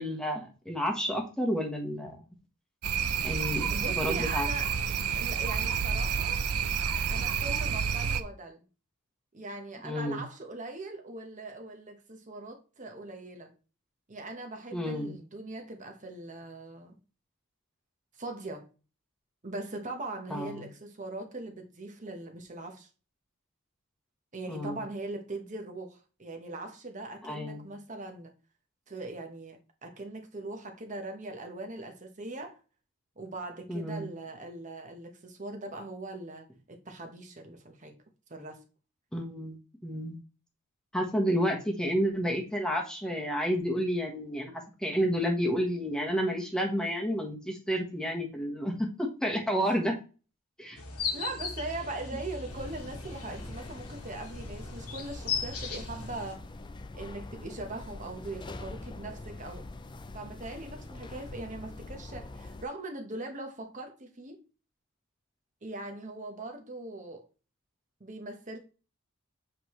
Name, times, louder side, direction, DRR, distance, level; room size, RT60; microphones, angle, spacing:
voice 1, 0.0-2.2 3.2-3.7 4.0-4.5 9.8-10.2 14.7-15.2 20.3-20.6 24.5-24.8 27.2-27.7 33.7-34.1 39.1-39.6 39.8-40.2 40.9-44.5 44.8-49.9 50.6-50.8, equal, 5° left, 1.2 m, -30 dB
sound 1, 2.8-8.2, right 7 dB, 85° right, 0.6 m, -29 dB
voice 2, 3.7-4.7 5.1-6.4 7.1-8.6 9.3-13.5 14.1-16.9 18.1-18.7 19.4-22.9 24.3-28.3 28.9-32.6 33.2-38.0 38.3-38.6 49.5-49.7 51.1-56.5 56.9-59.6 60.1-64.4 65.6-67.3 68.0-68.6, right 2 dB, 35° right, 1.1 m, -41 dB
sound 2, 50.8-56.4, left 5 dB, 85° left, 1.5 m, -38 dB
sound 3, 52.5-62.7, left 2 dB, 20° left, 0.4 m, -44 dB
7.7 x 4.7 x 3.1 m
head